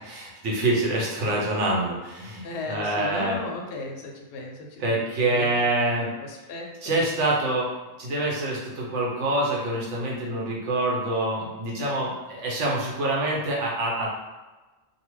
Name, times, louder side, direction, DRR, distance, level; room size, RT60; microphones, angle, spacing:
voice 1, 0.0-3.4 4.8-6.1 6.8-7.7 8.0-14.1, right 2 dB, 70° right, -3 dB, 1.0 m, -26 dB
voice 2, 2.4-6.9, left 2 dB, 65° left, 0 dB, 0.7 m, -36 dB
2.6 x 2.3 x 3.0 m, 1.2 s
omnidirectional pair, 1.3 m